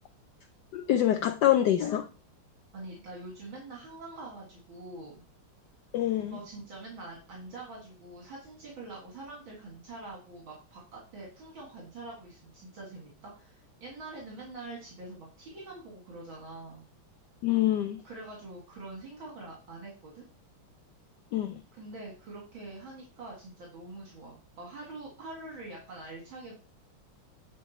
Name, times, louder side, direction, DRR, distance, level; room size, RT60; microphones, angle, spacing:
voice 1, 0.7-2.1 5.9-6.4 17.4-18.0 21.3-21.6, left 12 dB, 75° left, 1.0 m, -25 dB
voice 2, 2.7-5.2 6.3-16.8 18.0-20.2 21.7-26.6, right 2 dB, 70° right, 2.9 m, -45 dB
10.5 x 4.8 x 4.2 m
omnidirectional pair, 2.3 m